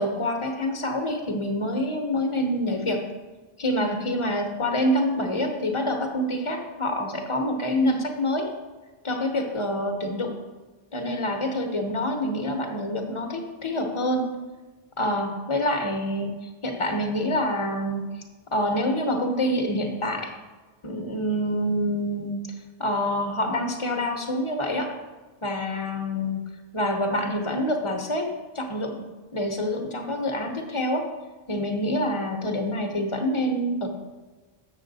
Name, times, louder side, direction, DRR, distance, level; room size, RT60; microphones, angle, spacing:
voice 1, 0.0-3.1 3.6-8.5 9.0-10.4 10.9-14.4 15.0-16.3 16.6-18.0 18.5-20.3 20.8-22.4 22.8-24.9 25.4-26.4 26.7-29.1 29.3-31.1 31.5-33.9, left 1 dB, 30° left, 4 dB, 0.8 m, -26 dB
7.1 x 6.6 x 4.0 m, 1.3 s
omnidirectional pair, 1.1 m